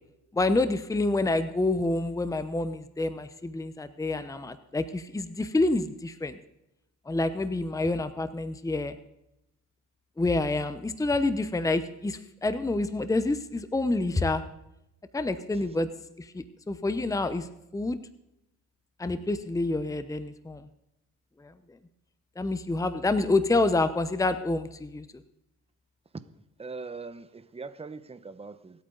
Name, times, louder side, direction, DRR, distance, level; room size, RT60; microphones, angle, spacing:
voice 1, 0.3-6.4 7.1-9.0 10.2-14.4 15.1-15.9 16.2-17.5 17.7-18.0 19.0-20.7 21.4-21.5 22.4-25.0, left 2 dB, 10° left, 11 dB, 0.8 m, -27 dB
voice 2, 26.6-28.8, right 4 dB, 20° right, 12 dB, 1.0 m, -41 dB
25.5 x 8.8 x 4.0 m, 0.85 s
cardioid pair, 90°, 30 cm